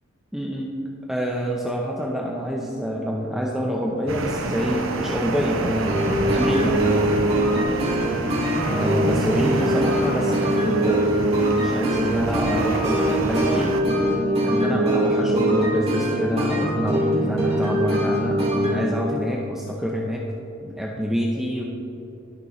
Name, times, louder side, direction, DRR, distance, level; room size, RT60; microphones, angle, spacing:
voice 1, 0.3-0.7 1.1-7.1 8.7-14.1 14.4-20.2 20.6-21.6, equal, ahead, -3 dB, 0.8 m, -26 dB
sound 1, 4.1-13.8, right 2 dB, 70° right, 0.9 m, -29 dB
sound 2, 5.9-18.7, right 1 dB, 30° right, 2.6 m, -22 dB
19.0 x 6.8 x 3.2 m, 2.9 s
head